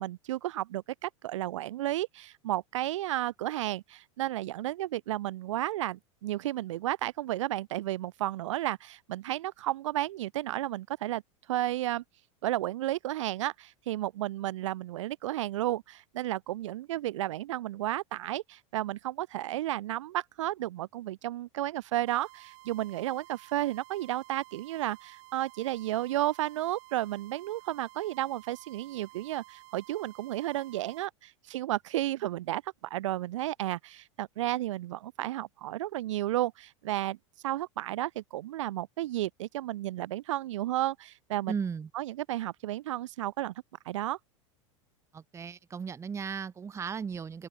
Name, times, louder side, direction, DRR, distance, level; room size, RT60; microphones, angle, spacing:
voice 1, 0.0-11.2 11.5-12.0 12.4-37.2 37.4-41.5 41.9-43.5 43.9-44.2, right 14 dB, 75° right, 0.9 m, -32 dB
sound 1, 22.1-31.1, right 25 dB, 55° right, 3.4 m, -53 dB
voice 2, 41.5-41.9 45.1-47.5, right 6 dB, 15° right, 0.7 m, -36 dB
hypercardioid pair, 95°, 16 cm